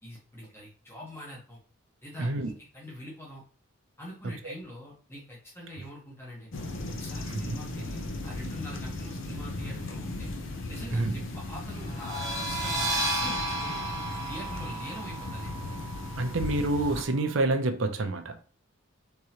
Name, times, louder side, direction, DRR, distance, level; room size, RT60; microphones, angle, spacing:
voice 1, 0.0-1.6 2.0-3.4 4.0-6.5 7.0-10.3 10.7-13.8 14.2-15.5, equal, 10° left, 1.1 m, -44 dB
voice 2, 2.2-2.5 4.4-4.5 7.3-7.6 10.9-11.1 16.2-18.4, right 2 dB, 60° right, 0.6 m, -28 dB
sound 1, 6.5-17.0, left 2 dB, 60° left, 0.6 m, -37 dB
sound 2, 11.9-17.4, right 1 dB, 15° right, 0.8 m, -34 dB
3.7 x 3.0 x 2.8 m
head